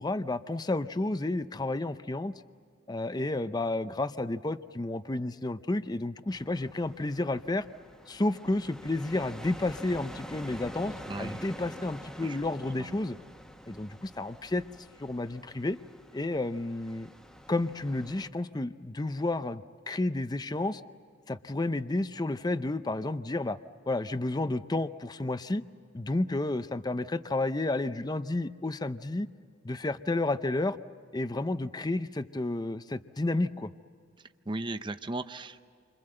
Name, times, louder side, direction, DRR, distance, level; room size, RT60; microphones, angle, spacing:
voice 1, 0.0-2.3 2.9-7.7 8.1-13.2 13.7-14.6 15.0-15.8 16.1-17.1 17.5-20.8 21.3-23.6 23.9-25.6 25.9-29.3 29.6-30.8 31.1-33.7, left 2 dB, 20° left, 12 dB, 0.6 m, -31 dB
sound 1, 6.3-18.3, equal, 5° left, 1.3 m, -47 dB
voice 2, 11.1-11.5 12.2-12.4 12.8-12.9 34.5-35.6, right 2 dB, 25° right, 9 dB, 0.7 m, -36 dB
29.0 x 25.5 x 7.8 m, 2.2 s
head